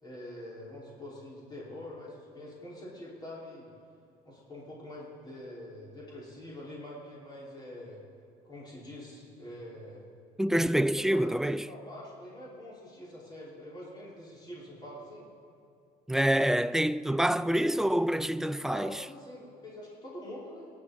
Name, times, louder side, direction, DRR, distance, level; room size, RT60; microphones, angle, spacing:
voice 1, 0.0-3.7 4.2-8.0 8.4-10.1 10.9-15.3 18.7-20.7, left 1 dB, 25° left, 5.3 m, -45 dB
voice 2, 10.4-11.7 16.1-19.0, right 1 dB, 5° right, 0.4 m, -26 dB
27.0 x 11.5 x 4.3 m
cardioid pair, 110°, 17 cm